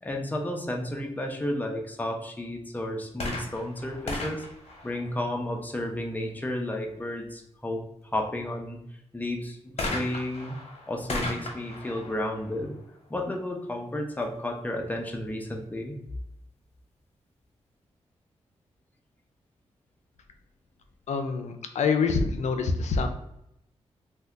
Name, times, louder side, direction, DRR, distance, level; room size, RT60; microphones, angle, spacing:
voice 1, 0.0-4.4 4.8-8.8 9.1-10.6 10.9-12.8 13.1-16.0, left 1 dB, 15° left, 2 dB, 0.6 m, -32 dB
sound 1, 3.1-5.7 9.8-13.4 14.2-14.3, left 2 dB, 60° left, 0.9 m, -36 dB
voice 2, 21.1-23.1, left 4 dB, 75° left, 6 dB, 0.4 m, -26 dB
2.7 x 2.2 x 3.4 m, 0.80 s
cardioid pair, 70°, 12 cm